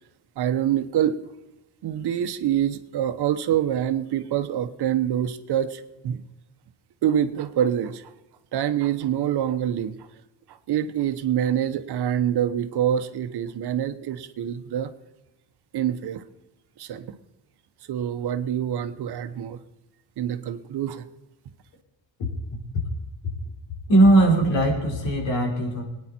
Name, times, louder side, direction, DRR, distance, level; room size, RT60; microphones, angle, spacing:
voice 1, 0.4-1.2 1.8-6.2 7.0-8.1 8.5-10.1 10.5-14.9 15.7-16.2 16.8-17.1 17.9-19.6 20.2-21.1, right 10 dB, 60° right, 10 dB, 1.1 m, -26 dB
voice 2, 23.9-25.8, right 1 dB, 70° left, 0 dB, 4.8 m, -19 dB
21.5 x 9.6 x 4.4 m, 1.0 s
cardioid pair, 135°, 45 cm